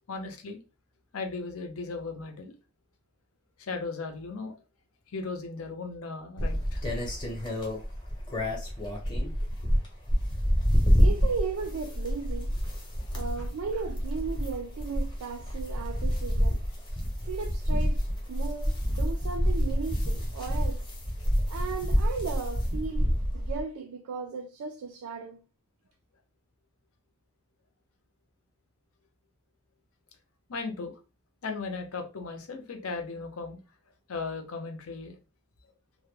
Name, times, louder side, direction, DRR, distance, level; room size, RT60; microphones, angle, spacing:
voice 1, 0.1-0.6 1.1-2.6 3.6-4.6 5.1-6.8 30.5-30.9 31.4-33.6 34.1-35.2, left 4 dB, 80° left, 0.6 m, -36 dB
sound 1, 6.4-23.6, equal, 20° left, 0.6 m, -28 dB
voice 2, 11.0-12.6 13.1-16.6 17.2-18.0 18.3-20.9 21.5-25.4, right 5 dB, 85° right, 0.3 m, -36 dB
2.1 x 2.0 x 3.1 m
head